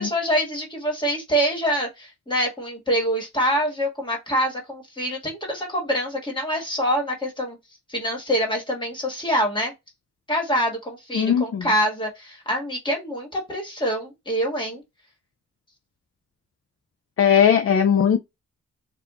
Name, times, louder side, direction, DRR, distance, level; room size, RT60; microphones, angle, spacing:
voice 1, 0.0-7.6 7.9-9.7 10.3-14.8, equal, 15° left, 1.6 m, -25 dB
voice 2, 11.1-11.7 17.2-18.2, left 8 dB, 50° left, 0.4 m, -18 dB
4.2 x 2.5 x 3.6 m
wide cardioid pair, 165°, 30 cm